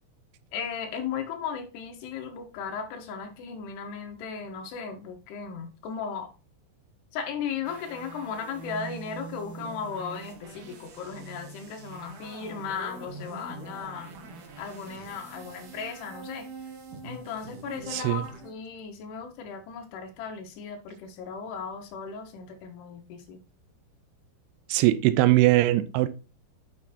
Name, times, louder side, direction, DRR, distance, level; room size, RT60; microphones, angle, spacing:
voice 1, 0.5-6.3 7.1-14.1 14.6-16.5 17.0-23.4, left 6 dB, 85° left, 3.4 m, -36 dB
sound 1, 7.6-18.5, right 4 dB, 65° right, 2.5 m, -44 dB
voice 2, 17.9-18.3 24.7-26.1, right 16 dB, 90° right, 2.7 m, -21 dB
9.1 x 5.9 x 2.8 m
omnidirectional pair, 4.7 m